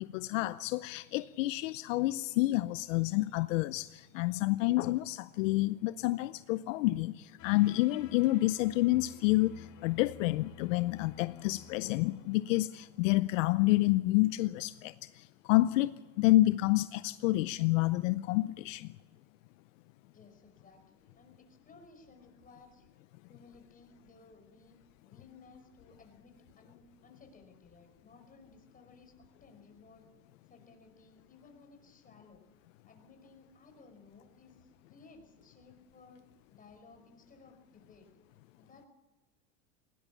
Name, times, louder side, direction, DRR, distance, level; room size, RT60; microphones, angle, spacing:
voice 1, 0.0-18.9, left 18 dB, 70° left, 0.7 m, -29 dB
sound 1, 7.4-13.2, left 11 dB, 50° left, 2.2 m, -52 dB
voice 2, 20.1-22.9 23.3-24.8 25.1-30.1 30.5-32.4 32.9-36.2 36.5-38.1 38.6-38.9, left 3 dB, 20° left, 5.2 m, -58 dB
20.0 x 19.0 x 7.2 m
supercardioid pair, 120°, 39 cm